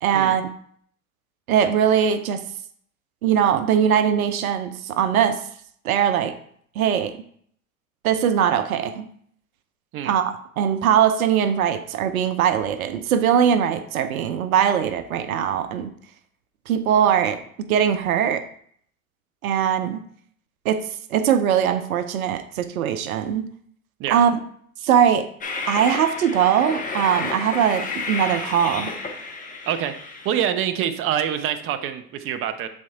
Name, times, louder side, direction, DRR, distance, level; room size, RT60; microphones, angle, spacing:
voice 1, 0.0-0.4 1.5-2.4 3.2-5.4 5.8-6.4 6.8-7.1 8.0-9.1 10.0-15.9 16.7-17.4 17.7-18.5 19.4-20.0 20.6-20.8 21.1-23.5 24.1-24.3 24.8-25.3 25.7-28.9, right 8 dB, 70° right, 11 dB, 0.7 m, -21 dB
Train, 25.4-30.4, left 3 dB, 20° left, 1.0 m, -31 dB
voice 2, 29.7-32.7, right 9 dB, 30° right, 8 dB, 0.6 m, -26 dB
7.5 x 4.4 x 3.6 m, 0.62 s
hypercardioid pair, 95°, 43 cm